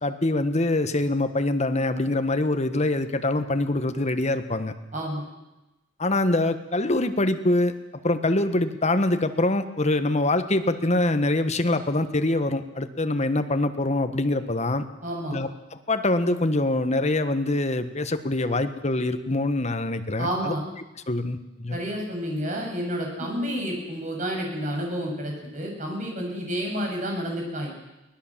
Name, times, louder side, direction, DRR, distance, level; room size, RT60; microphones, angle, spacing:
voice 1, 0.0-4.7 6.0-7.7 8.0-14.8 15.3-15.5 15.9-20.5 21.1-21.8, left 2 dB, 35° left, 9 dB, 1.4 m, -24 dB
voice 2, 4.9-5.3 15.0-15.4 20.2-20.6 21.7-27.7, equal, 40° right, 0 dB, 7.2 m, -30 dB
23.5 x 18.5 x 7.5 m, 1.0 s
head